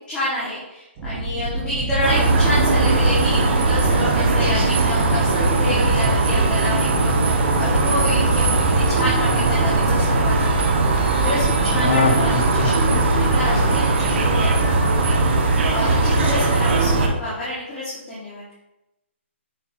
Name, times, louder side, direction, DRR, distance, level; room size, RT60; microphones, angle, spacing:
voice 1, 0.1-14.5 14.8-18.4, left 1 dB, 15° left, -10 dB, 1.9 m, -29 dB
sound 1, 1.0-15.4, right 1 dB, 25° right, 1.0 m, -26 dB
sound 2, 2.0-17.1, right 3 dB, 55° right, 1.6 m, -19 dB
Laughter, 5.9-10.2 11.7-14.7 15.1-15.2, left 3 dB, 70° left, 1.7 m, -27 dB
7.9 x 5.8 x 2.9 m, 0.91 s
hypercardioid pair, 165°, 7 cm